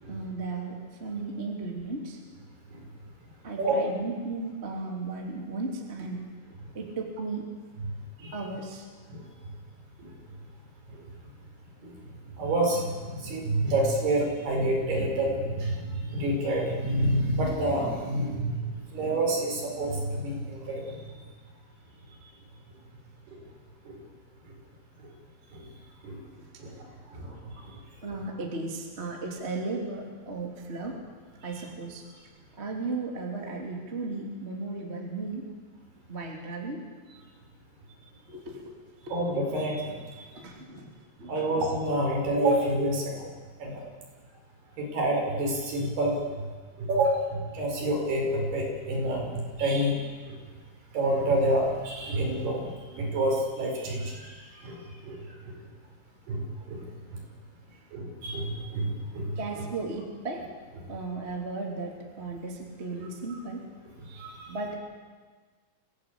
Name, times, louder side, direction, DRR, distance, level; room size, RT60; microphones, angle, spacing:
voice 1, 0.1-2.2 3.4-6.3 6.7-7.5 8.3-8.9 26.4-26.5 28.0-31.0 31.4-32.1 32.5-35.5 36.1-36.8 38.3-38.7 39.1-39.2 40.3-40.9 41.2-41.5 57.7-57.8 59.3-60.5 60.9-63.6 64.5-64.8, right 3 dB, 20° right, 0 dB, 2.4 m, -35 dB
voice 2, 12.4-21.1 23.3-23.4 23.9-24.0 25.0-25.1 25.5-25.6 26.0-26.2 26.6-27.8 39.1-40.2 41.3-43.3 43.6-43.8 44.8-46.2 46.8-50.0 50.3-50.4 50.9-55.5 56.3-57.2 57.9-59.3 64.1-64.6, right 1 dB, 60° right, 0 dB, 6.8 m, -28 dB
25.5 x 17.0 x 8.5 m, 1.4 s
omnidirectional pair, 5.4 m